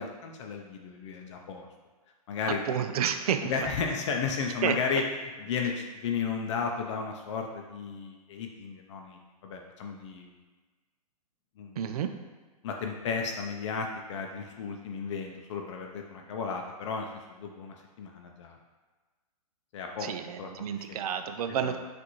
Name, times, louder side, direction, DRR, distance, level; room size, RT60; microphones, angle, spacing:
voice 1, 0.0-1.7 2.3-2.6 3.4-5.0 5.4-10.4 11.6-11.9 12.6-17.1 17.4-18.6 19.7-20.1 20.4-20.5 20.8-21.0 21.6-21.7, left 5 dB, 50° left, 2 dB, 0.5 m, -34 dB
voice 2, 2.7-3.7 4.6-4.8 11.8-12.1 20.0-21.8, right 8 dB, 75° right, 8 dB, 0.5 m, -30 dB
6.0 x 2.6 x 3.0 m, 1.3 s
hypercardioid pair, 145°, 20 cm